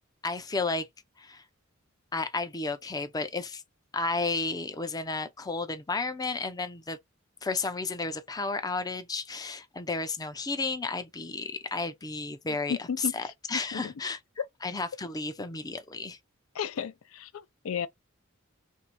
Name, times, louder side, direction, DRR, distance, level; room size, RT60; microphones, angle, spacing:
voice 1, 0.2-0.9 1.2-1.4 2.1-3.6 3.9-7.0 7.4-14.2 14.6-16.2, left 3 dB, 20° left, 0.5 m, -32 dB
voice 2, 12.7-13.3 13.7-13.9 16.5-17.3 17.6-17.9, left 7 dB, 75° left, 0.4 m, -33 dB
3.3 x 2.7 x 4.5 m
head